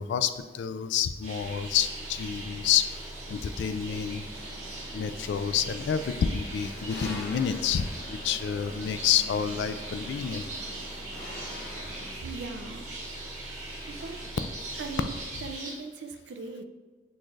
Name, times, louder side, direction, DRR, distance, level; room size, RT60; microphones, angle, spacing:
voice 1, 0.0-2.9 3.3-4.2 4.9-10.4, left 8 dB, 80° left, 11 dB, 0.3 m, -28 dB
sound 1, 1.2-15.7, right 2 dB, 40° right, 1.2 m, -42 dB
sound 2, 1.4-15.3, right 1 dB, 15° right, 0.5 m, -44 dB
sound 3, 4.3-12.1, left 1 dB, 60° left, 1.2 m, -45 dB
voice 2, 12.2-12.9 13.9-14.3 14.8-15.1 15.4-16.6, right 4 dB, 80° right, 7 dB, 0.4 m, -39 dB
6.2 x 2.4 x 3.2 m, 1.3 s
head